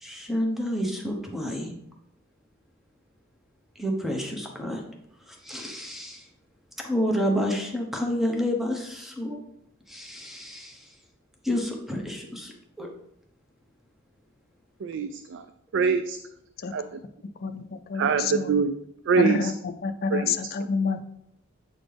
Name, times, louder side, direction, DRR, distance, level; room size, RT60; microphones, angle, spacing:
voice 1, 0.0-1.8 3.7-4.8 5.3-6.3 6.8-9.4 9.9-10.9 11.4-12.9, equal, ahead, 1 dB, 1.0 m, -29 dB
voice 2, 14.8-15.4 15.7-16.2 16.7-17.0 17.9-18.8 19.1-19.5 20.1-20.4, right 5 dB, 65° right, 10 dB, 0.3 m, -24 dB
voice 3, 17.4-18.5 19.2-19.5 19.8-21.0, left 4 dB, 50° left, 9 dB, 0.5 m, -27 dB
7.7 x 4.1 x 3.4 m, 0.75 s
head